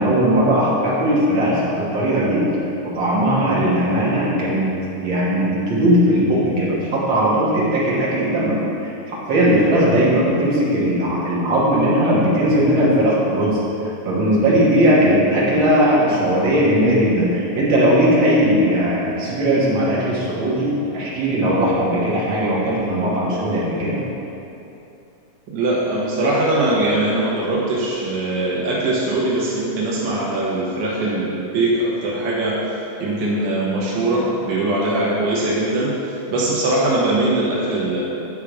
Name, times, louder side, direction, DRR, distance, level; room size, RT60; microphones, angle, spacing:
voice 1, 0.0-2.4 2.8-4.7 5.0-13.6 14.0-24.0, equal, 50° right, -7 dB, 1.7 m, -18 dB
voice 2, 25.5-32.6 33.0-36.0 36.3-38.0, right 2 dB, 70° right, -6 dB, 1.0 m, -21 dB
9.1 x 3.6 x 4.7 m, 2.9 s
omnidirectional pair, 3.3 m